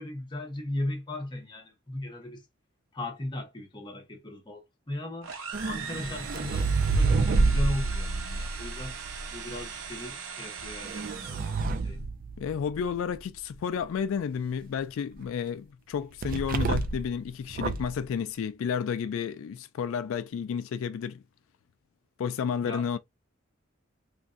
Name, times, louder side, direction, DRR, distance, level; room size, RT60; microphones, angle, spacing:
voice 1, 0.0-2.4 2.9-5.4 5.7-9.0 9.3-11.6 11.8-12.0 22.6-22.9, left 1 dB, 25° left, 0.9 m, -37 dB
sound 1, 5.2-11.9, right 6 dB, 75° right, 0.7 m, -40 dB
sound 2, 5.5-9.6 10.6-12.9 16.2-17.1 17.5-18.0, right 3 dB, 45° right, 0.4 m, -28 dB
voice 2, 12.4-21.2 22.2-23.0, left 7 dB, 80° left, 0.3 m, -31 dB
3.2 x 2.5 x 2.5 m
head